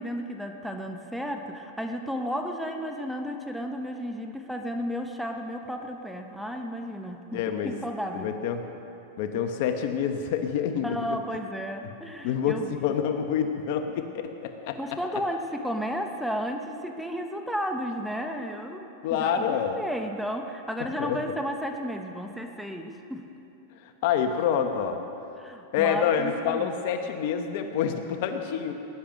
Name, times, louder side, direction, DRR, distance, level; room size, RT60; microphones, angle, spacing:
voice 1, 0.0-8.3 10.8-12.8 14.8-23.3 25.4-26.7, equal, ahead, 4 dB, 1.0 m, -33 dB
voice 2, 7.3-7.7 8.1-8.6 9.2-11.0 12.2-14.8 19.0-19.8 20.8-21.2 23.8-25.0 25.7-28.7, left 8 dB, 60° left, 6 dB, 1.0 m, -27 dB
19.5 x 10.5 x 5.3 m, 2.9 s
hypercardioid pair, 130°, 0 cm